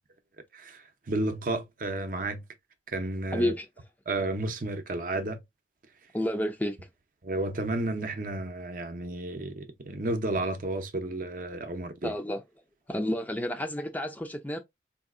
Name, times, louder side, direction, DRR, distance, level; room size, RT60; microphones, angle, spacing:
voice 1, 0.5-2.4 2.9-3.5 4.1-5.4 7.2-12.1, right 2 dB, 50° right, 0.6 m, -32 dB
voice 2, 3.3-3.7 6.1-6.8 12.0-12.4 12.9-14.6, left 1 dB, 10° left, 0.4 m, -30 dB
3.9 x 2.7 x 2.4 m
head